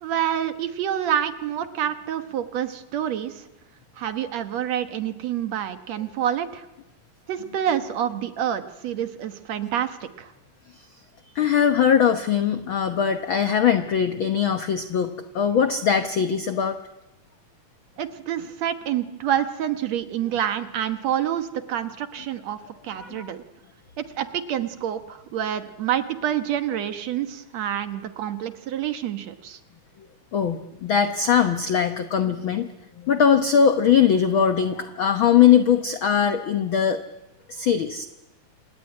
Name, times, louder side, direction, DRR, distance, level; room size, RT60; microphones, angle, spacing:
voice 1, 0.0-3.4 4.0-6.7 7.3-10.3 18.0-22.6 22.8-23.4 24.0-29.6, right 10 dB, 65° right, 10 dB, 2.2 m, -27 dB
voice 2, 11.3-16.8 23.0-23.3 30.3-32.7 33.0-37.0 37.5-38.1, left 8 dB, 70° left, 8 dB, 1.2 m, -21 dB
27.0 x 18.0 x 9.9 m, 0.97 s
omnidirectional pair, 3.7 m